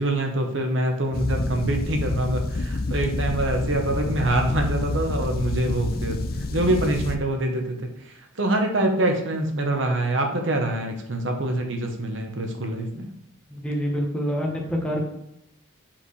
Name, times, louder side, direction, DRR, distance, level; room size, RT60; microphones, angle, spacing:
voice 1, 0.0-6.2 6.5-13.1, right 1 dB, 65° right, 4 dB, 1.0 m, -25 dB
sound 1, 1.1-7.2, left 2 dB, 45° left, 0.4 m, -28 dB
voice 2, 13.5-15.1, equal, 5° left, -2 dB, 1.1 m, -26 dB
5.8 x 5.1 x 3.2 m, 0.80 s
head